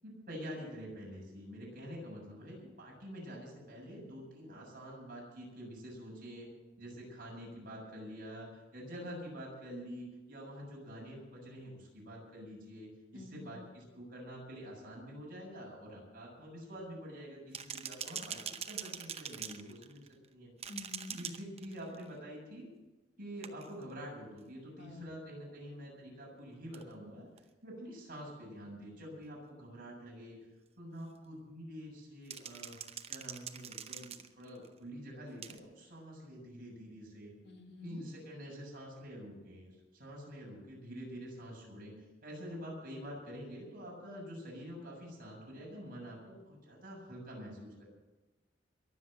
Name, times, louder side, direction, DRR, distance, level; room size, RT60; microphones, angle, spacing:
voice 1, 0.0-6.5 6.8-20.0 20.3-20.5 21.1-22.7 23.2-27.3 27.6-30.4 30.8-32.8 33.1-37.3 37.8-41.9 42.2-47.8, equal, 50° right, -2 dB, 7.4 m, -47 dB
voice 2, 13.1-13.6 20.7-21.2 24.8-25.2 37.4-38.0, left 2 dB, 65° left, 2 dB, 2.4 m, -49 dB
sound 1, 17.5-20.3 20.6-22.1 23.4-23.8 26.7-26.8 27.4-27.5 29.2-29.3 32.3-34.7 35.4-35.6, right 8 dB, 35° right, 0.8 m, -43 dB
22.5 x 7.9 x 7.6 m, 1.1 s
head